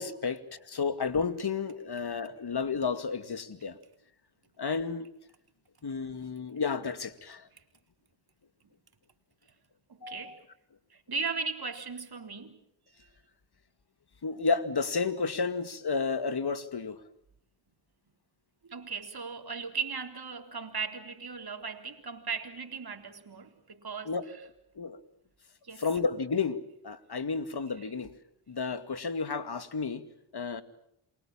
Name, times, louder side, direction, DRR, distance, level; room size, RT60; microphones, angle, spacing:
voice 1, 0.0-3.8 4.6-5.1 5.8-7.5 10.0-10.4 14.2-17.0 24.1-24.3 24.8-25.0 25.8-28.1 28.5-30.1 30.3-30.6, left 5 dB, 55° left, 12 dB, 2.3 m, -32 dB
voice 2, 9.9-10.4 10.9-12.6 18.6-24.4 25.6-25.8, right 5 dB, 55° right, 6 dB, 3.9 m, -37 dB
28.5 x 23.5 x 7.4 m, 0.75 s
cardioid pair, 45°, 46 cm